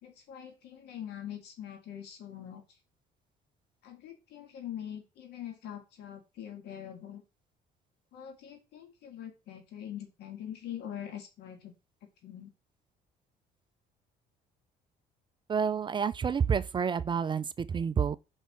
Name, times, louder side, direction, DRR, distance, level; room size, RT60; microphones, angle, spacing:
voice 1, 0.0-2.6 3.8-7.2 8.1-11.7 12.0-12.5, left 10 dB, 75° left, 1.9 m, -43 dB
voice 2, 15.5-18.2, right 6 dB, 30° right, 0.4 m, -29 dB
5.6 x 4.3 x 5.9 m
cardioid pair, 110°, 17 cm